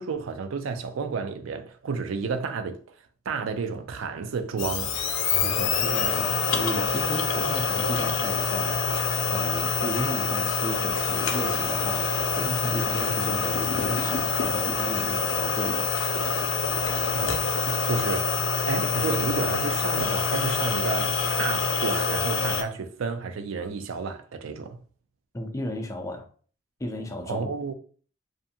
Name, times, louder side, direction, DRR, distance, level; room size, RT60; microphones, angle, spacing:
voice 1, 0.0-2.8 3.3-4.9 17.1-18.4 18.7-24.8 27.3-27.7, right 5 dB, 90° right, 0.4 m, -31 dB
sound 1, 4.6-22.6, left 5 dB, 80° left, 0.4 m, -26 dB
voice 2, 5.4-15.9 25.3-26.3 26.8-27.5, left 1 dB, 15° left, 0.3 m, -34 dB
2.6 x 2.4 x 2.7 m
head